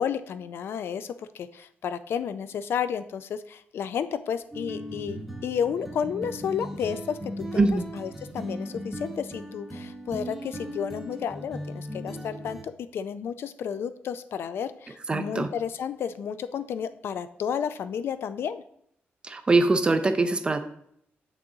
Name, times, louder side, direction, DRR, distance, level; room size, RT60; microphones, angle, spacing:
voice 1, 0.0-18.6, left 7 dB, 65° left, 12 dB, 0.4 m, -32 dB
sound 1, 4.5-12.6, equal, ahead, 0.9 m, -38 dB
voice 2, 15.1-15.5 19.2-20.6, right 3 dB, 25° right, 9 dB, 0.5 m, -22 dB
7.0 x 6.1 x 3.8 m, 0.70 s
wide cardioid pair, 165°, 4 cm